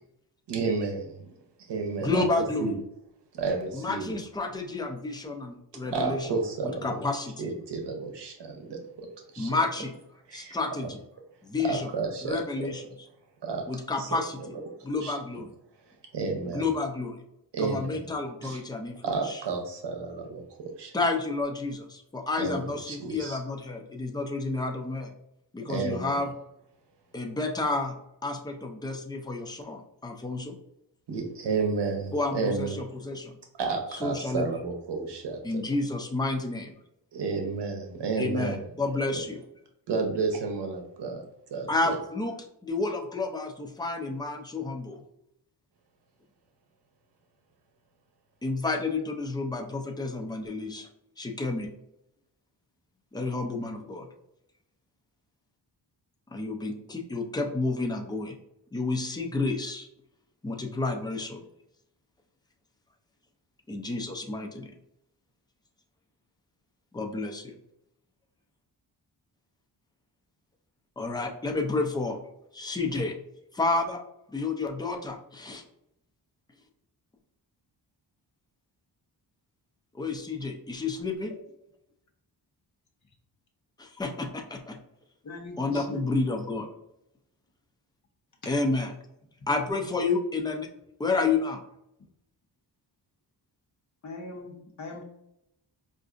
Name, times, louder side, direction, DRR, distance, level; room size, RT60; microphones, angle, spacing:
voice 1, 0.5-1.3 1.7-2.3 2.6-2.7 3.3-4.2 5.9-7.0 7.4-9.1 9.3-9.5 10.3-10.9 11.6-12.7 13.4-14.1 15.0-15.1 16.1-16.7 17.5-18.0 18.4-18.6 19.0-20.9 22.4-23.4 25.7-26.2 31.1-32.8 33.6-35.6 37.1-38.6 39.9-41.2 41.5-41.9, right 4 dB, 75° right, 3 dB, 0.8 m, -31 dB
voice 2, 2.0-2.7 3.7-6.3 6.6-7.5 9.4-9.9 10.3-11.0 11.4-11.9 12.2-12.8 13.7-14.4 14.8-15.5 16.4-17.2 17.6-19.4 20.9-25.1 25.5-26.3 27.1-27.9 28.2-30.5 32.1-33.4 34.0-34.5 35.4-36.7 38.2-39.4 41.7-42.4 42.6-45.0 48.4-50.9 51.2-51.7 53.1-54.1 56.3-58.4 58.7-59.9 60.4-61.4 63.7-64.7 66.9-67.6 71.0-72.2 72.5-73.1 73.5-74.0 74.3-75.6 80.0-81.3 83.8-84.8 85.6-86.7 88.5-88.9 89.5-90.7 91.0-91.6, left 3 dB, 10° left, 3 dB, 0.3 m, -30 dB
voice 3, 85.2-86.1 88.4-88.5 89.4-89.5 94.0-95.0, left 2 dB, 45° left, 2 dB, 0.8 m, -40 dB
4.6 x 2.5 x 2.4 m, 0.80 s
wide cardioid pair, 150°, 42 cm